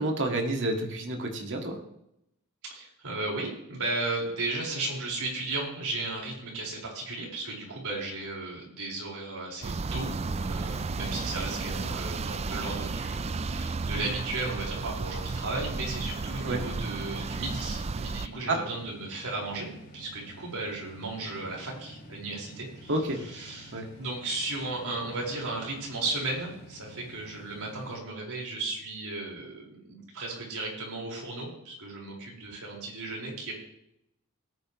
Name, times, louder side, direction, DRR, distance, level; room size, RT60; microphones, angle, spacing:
voice 1, 0.0-1.8 16.4-16.6 18.5-18.6 22.9-23.2 23.7-23.9, right 2 dB, 55° right, 2 dB, 1.9 m, -29 dB
voice 2, 2.6-33.5, right 2 dB, 70° right, -2 dB, 4.9 m, -35 dB
sound 1, 9.6-18.3, right 3 dB, 30° right, 0.4 m, -33 dB
sound 2, 15.1-28.0, equal, 50° left, 5.5 m, -49 dB
18.0 x 9.5 x 3.1 m, 0.80 s
head